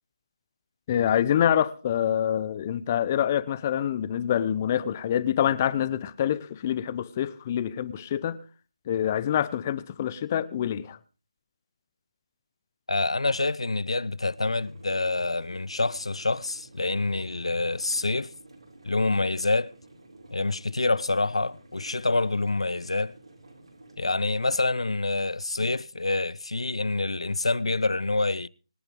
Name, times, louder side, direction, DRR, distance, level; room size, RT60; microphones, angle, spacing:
voice 1, 0.9-8.4 8.9-11.0, left 10 dB, 25° left, 0.9 m, -26 dB
voice 2, 12.9-18.3 18.8-19.7 20.3-23.2 24.0-28.5, left 2 dB, 80° left, 0.7 m, -27 dB
sound 1, 14.3-24.0, right 2 dB, 75° right, 6.3 m, -52 dB
25.0 x 9.2 x 3.8 m
figure-of-eight pair, 160°, 3 cm